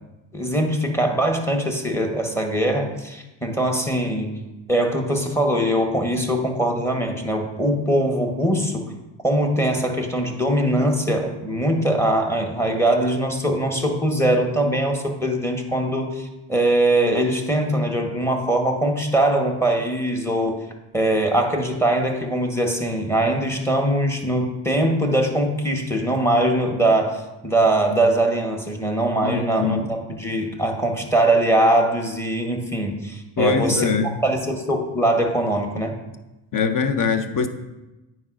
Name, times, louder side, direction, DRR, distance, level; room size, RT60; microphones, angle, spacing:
voice 1, 0.3-4.4 4.7-8.9 9.2-20.6 20.9-33.9 34.2-36.0, right 1 dB, 5° left, 3 dB, 1.2 m, -22 dB
voice 2, 29.2-29.9 33.4-34.1 36.5-37.5, left 5 dB, 40° left, 9 dB, 0.8 m, -22 dB
9.5 x 4.2 x 2.5 m, 1.0 s
supercardioid pair, 65°, 50 cm